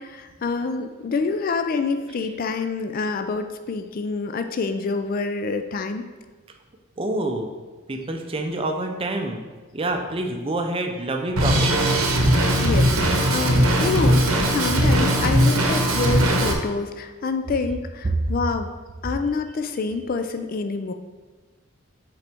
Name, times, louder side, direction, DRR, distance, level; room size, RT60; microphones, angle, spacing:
voice 1, 0.0-6.0 12.6-14.2 14.5-18.7 19.0-20.9, left 4 dB, 45° left, 7 dB, 0.3 m, -27 dB
voice 2, 7.0-7.5 7.9-9.4 9.7-11.8, right 2 dB, 25° right, 4 dB, 0.5 m, -27 dB
Drum kit, 11.4-16.5, right 1 dB, 90° right, 0.9 m, -19 dB
7.2 x 3.9 x 3.5 m, 1.3 s
head